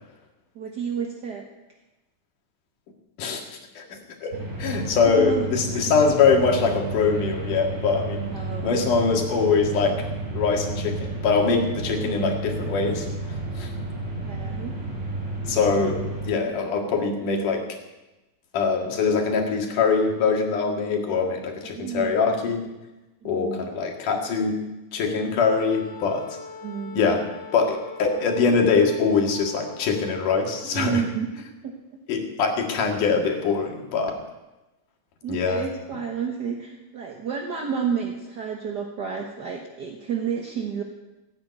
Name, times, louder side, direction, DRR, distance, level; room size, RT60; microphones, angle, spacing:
voice 1, 0.5-1.5 5.0-5.5 5.7-5.8 8.3-8.9 12.0-12.2 14.2-14.7 21.6-22.2 23.2-23.7 26.6-27.2 30.6-31.3 31.6-31.7 35.2-40.8, right 6 dB, 55° right, 2 dB, 1.2 m, -30 dB
voice 2, 3.2-4.3 4.6-8.4 8.6-10.1 10.3-13.1 13.6-13.7 15.5-16.0 16.3-17.8 18.5-22.6 23.3-24.7 24.9-26.4 27.0-27.3 27.5-31.0 32.1-34.2 35.3-35.6, left 5 dB, 80° left, 2 dB, 3.6 m, -23 dB
sound 1, 4.3-16.3, right 2 dB, 25° right, 4.9 m, -32 dB
Wind instrument woodwind instrument, 25.6-30.7, left 4 dB, 40° left, 0.7 m, -42 dB
17.0 x 9.1 x 9.4 m, 1.0 s
omnidirectional pair, 3.6 m